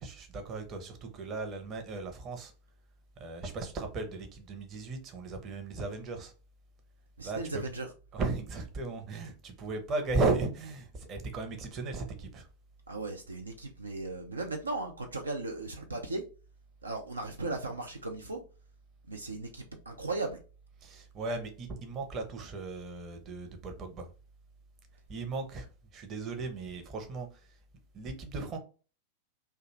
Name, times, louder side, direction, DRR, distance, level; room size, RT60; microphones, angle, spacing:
voice 1, 0.0-2.5 3.2-6.3 7.2-7.6 8.1-12.5 20.8-24.1 25.1-25.7 25.9-27.3 27.9-28.6, right 3 dB, 30° right, 0.7 m, -36 dB
voice 2, 7.2-7.9 12.9-16.2 16.8-18.4 19.1-20.4, right 2 dB, 75° right, 0.4 m, -37 dB
2.4 x 2.2 x 3.0 m
figure-of-eight pair, 90°, 0 cm